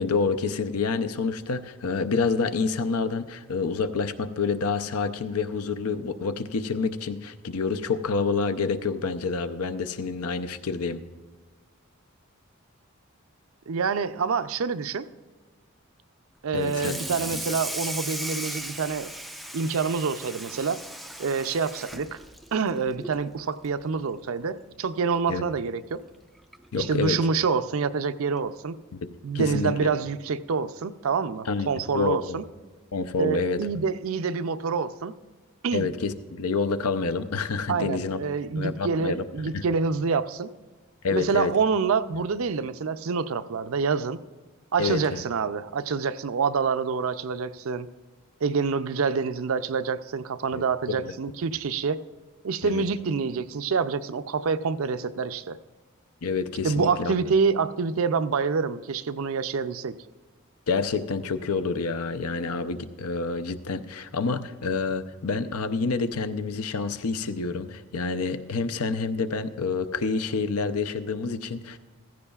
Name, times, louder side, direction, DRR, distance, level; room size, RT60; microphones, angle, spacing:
voice 1, 0.0-11.0 16.5-17.0 17.3-17.4 25.3-25.4 26.7-27.2 29.3-29.9 31.5-31.7 31.9-32.4 32.9-33.6 35.7-38.2 38.6-39.2 39.5-39.6 41.0-41.5 44.8-45.2 50.5-50.6 51.0-51.1 52.6-52.8 56.2-57.2 60.7-71.8, left 4 dB, 85° left, 11 dB, 0.6 m, -28 dB
voice 2, 13.7-15.1 16.4-19.1 19.5-20.8 21.2-22.2 22.5-26.0 26.8-28.8 29.2-32.4 33.2-35.1 35.6-35.9 37.7-40.5 41.1-44.2 44.7-47.9 48.4-52.0 52.4-55.6 56.6-60.0, right 5 dB, 65° right, 12 dB, 0.5 m, -27 dB
Water tap faucet / Sink (filling or washing), 16.6-23.2 23.6-23.9 24.2-24.3 24.7-24.8 26.0-26.1 26.5-26.7, right 1 dB, ahead, 0.3 m, -37 dB
15.5 x 15.0 x 2.4 m, 1.3 s
head